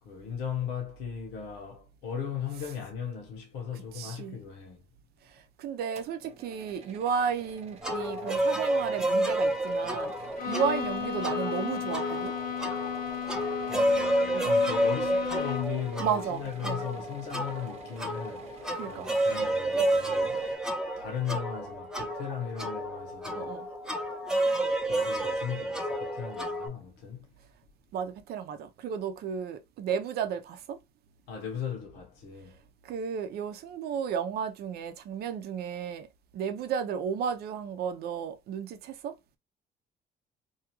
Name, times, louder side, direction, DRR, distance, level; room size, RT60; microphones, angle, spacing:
voice 1, 0.0-4.9 13.7-20.4 21.0-23.6 24.8-27.3 31.3-32.6, left 7 dB, 85° left, 1.0 m, -37 dB
voice 2, 4.0-4.3 5.6-10.1 10.5-12.3 14.3-14.5 16.0-16.8 18.8-19.1 23.4-23.7 27.9-30.8 32.8-36.1 36.3-39.1, right 7 dB, 70° right, 0.6 m, -33 dB
sound 1, 6.0-20.6, right 5 dB, 40° right, 0.8 m, -51 dB
sound 2, 7.8-26.7, right 1 dB, 5° right, 0.6 m, -30 dB
Bowed string instrument, 10.4-15.9, left 8 dB, 55° left, 0.6 m, -34 dB
2.8 x 2.4 x 2.9 m
cardioid pair, 110°, 17 cm